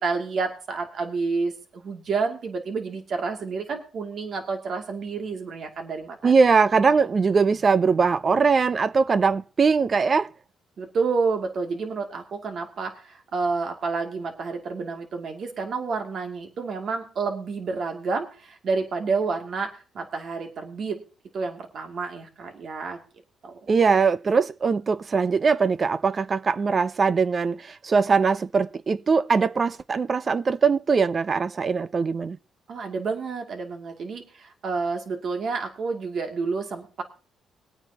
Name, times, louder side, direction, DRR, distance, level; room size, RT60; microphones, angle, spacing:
voice 1, 0.0-6.3 10.8-21.0 21.3-23.0 23.4-23.6 32.7-37.0, right 4 dB, 60° right, 2.4 m, -29 dB
voice 2, 6.2-10.3 23.7-32.4, right 5 dB, 40° right, 0.5 m, -21 dB
21.5 x 9.0 x 2.8 m
cardioid pair, 90°, 0 cm